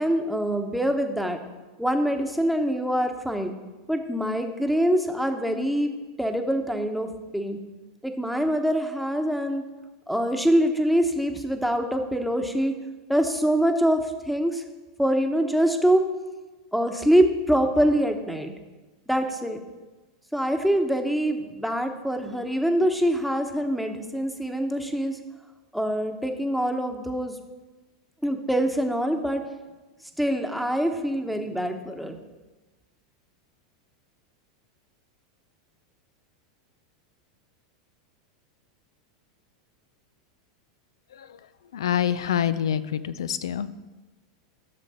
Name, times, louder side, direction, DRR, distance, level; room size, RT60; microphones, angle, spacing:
voice 1, 0.0-1.4 1.8-3.5 3.9-5.9 6.2-7.6 8.0-9.6 10.1-12.7 13.1-14.0 14.3-14.6 15.0-16.0 16.7-18.5 19.1-19.6 20.3-25.2 25.7-27.3 28.2-29.4 30.2-32.2, equal, ahead, 4 dB, 1.1 m, -24 dB
voice 2, 41.7-43.7, left 9 dB, 85° left, 14 dB, 0.5 m, -26 dB
13.0 x 6.4 x 4.3 m, 1.2 s
hypercardioid pair, 110°, 2 cm